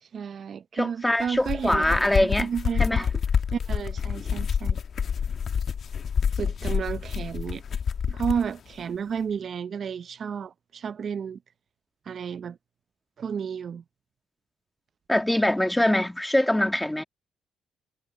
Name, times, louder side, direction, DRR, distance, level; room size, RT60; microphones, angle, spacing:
voice 1, 0.0-3.1 3.5-4.8 6.4-7.6 8.1-11.4 12.1-12.6 13.2-13.8, right 7 dB, 55° right, 0.7 m, -32 dB
voice 2, 0.7-2.5 2.8-3.0 15.1-17.0, left 1 dB, 10° left, 2.5 m, -23 dB
sound 1, 1.3-8.5, left 7 dB, 55° left, 1.4 m, -27 dB
supercardioid pair, 60°, 0 cm